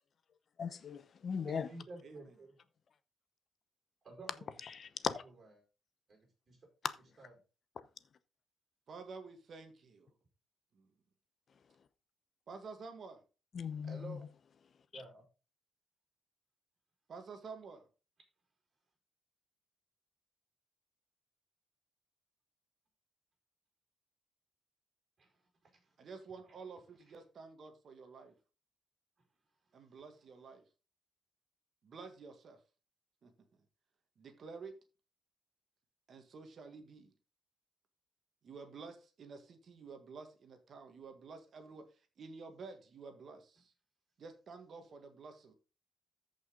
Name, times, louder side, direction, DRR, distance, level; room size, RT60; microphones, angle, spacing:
voice 1, 0.6-1.7 4.7-5.2 13.5-14.2, left 6 dB, 45° left, 0.8 m, -38 dB
voice 2, 1.5-2.6 4.0-4.5 5.1-5.5 6.1-6.2 6.5-6.6 7.2-7.3 13.8-14.3 14.9-15.2 25.2-25.3 25.8-25.9, right 2 dB, 30° right, 4.9 m, -51 dB
voice 3, 8.9-10.1 10.7-10.9 12.5-13.2 17.1-17.9 26.0-28.3 29.7-30.6 31.8-32.6 33.2-33.3 34.2-34.8 36.1-37.1 38.4-41.9 42.2-43.7 44.2-45.5, right 4 dB, 45° right, 1.8 m, -50 dB
14.0 x 5.6 x 3.8 m
cardioid pair, 145°, 0 cm